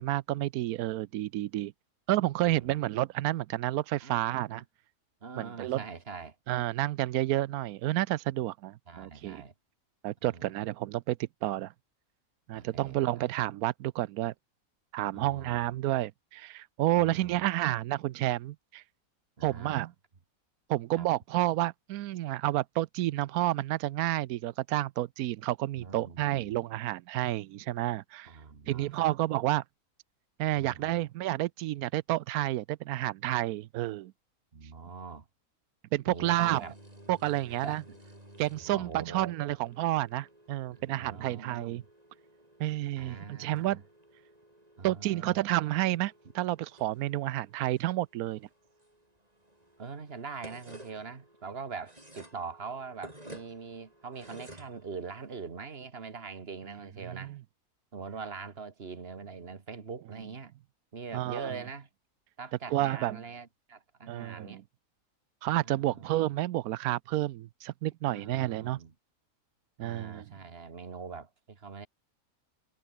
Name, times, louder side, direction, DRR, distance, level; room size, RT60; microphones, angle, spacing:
voice 1, 0.0-1.7 2.1-4.6 5.4-5.8 6.5-9.4 10.0-11.2 11.4-11.7 12.5-14.3 14.9-18.8 19.4-19.9 20.7-28.3 28.7-29.6 30.4-34.1 35.9-36.6 37.1-37.8 38.4-41.8 42.6-43.8 44.8-48.5 57.0-57.4 61.1-61.5 62.7-63.2 64.1-64.6 65.4-68.8 69.8-70.2, right 15 dB, 90° right, 1.1 m, -30 dB
voice 2, 4.0-4.6 5.2-6.4 8.9-9.5 10.3-10.6 12.5-13.0 15.1-15.7 17.0-17.5 19.4-19.8 21.0-21.1 25.7-26.6 28.3-29.1 30.5-31.0 34.5-35.3 36.1-36.7 37.4-38.0 38.7-39.3 40.7-41.9 43.0-43.8 44.8-45.4 49.8-57.4 57.9-60.5 60.9-61.9 62.4-64.6 65.6-66.2 68.0-68.9 69.8-71.9, right 5 dB, 45° right, 1.9 m, -43 dB
sound 1, 36.3-55.5, right 1 dB, 25° right, 6.7 m, -54 dB
omnidirectional pair, 1.5 m